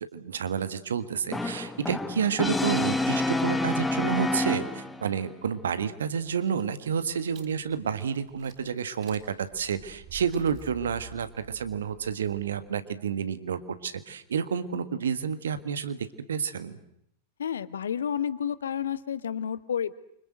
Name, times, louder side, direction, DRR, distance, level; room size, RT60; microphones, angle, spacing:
voice 1, 0.0-16.8, right 7 dB, 65° right, 11 dB, 1.7 m, -30 dB
Brass instrument, 1.3-5.1, left 2 dB, 10° left, 1.6 m, -28 dB
sound 1, 6.3-12.8, right 8 dB, 40° right, 5.3 m, -51 dB
voice 2, 17.4-19.9, left 8 dB, 65° left, 15 dB, 1.1 m, -30 dB
29.0 x 25.0 x 7.9 m, 0.75 s
figure-of-eight pair, 90°, 0 cm